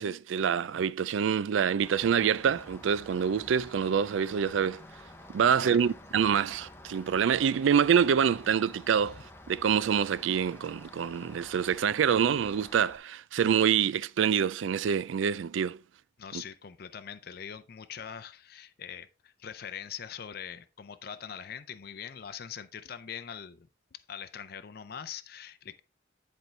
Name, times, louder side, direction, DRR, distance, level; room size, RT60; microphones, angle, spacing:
voice 1, 0.0-4.8 5.3-9.2 9.5-15.8, right 7 dB, 75° right, 0.3 m, -26 dB
Rain, 1.8-13.0, left 1 dB, 10° left, 0.7 m, -50 dB
voice 2, 5.4-5.9 16.2-25.8, left 8 dB, 50° left, 0.5 m, -43 dB
10.5 x 4.4 x 3.3 m
head